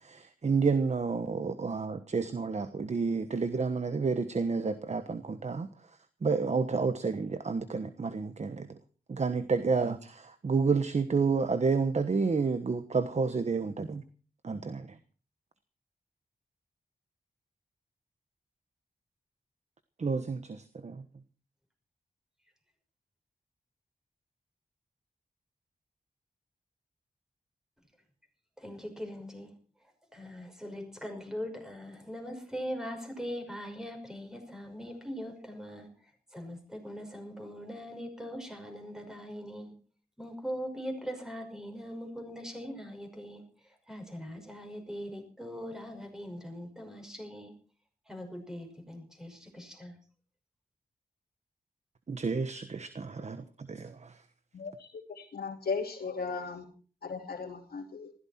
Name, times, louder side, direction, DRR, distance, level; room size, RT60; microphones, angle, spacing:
voice 1, 0.0-8.8 9.1-14.0 14.4-15.0 20.0-21.0 52.1-54.2, right 4 dB, 45° right, 1.2 m, -30 dB
voice 2, 28.6-29.5 30.1-35.9 36.3-39.7 40.2-43.4 43.9-47.5 48.1-49.9, equal, 5° right, 5.8 m, -41 dB
voice 3, 55.2-56.6 57.0-58.1, left 4 dB, 85° left, 2.7 m, -36 dB
20.0 x 16.0 x 4.4 m
wide cardioid pair, 105°, 15 cm